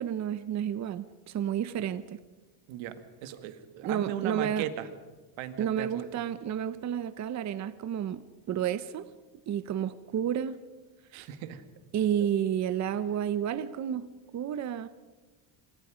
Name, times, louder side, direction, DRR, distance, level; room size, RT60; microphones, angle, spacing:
voice 1, 0.0-2.2 3.8-4.7 5.6-8.2 8.5-9.1 9.5-10.6 11.9-14.1 14.3-14.9, right 9 dB, 35° right, 13 dB, 0.9 m, -31 dB
voice 2, 2.7-4.9 5.4-6.0 11.1-11.6, right 11 dB, 80° right, 10 dB, 2.2 m, -37 dB
27.5 x 25.5 x 5.1 m, 1.2 s
cardioid pair, 145°, 45 cm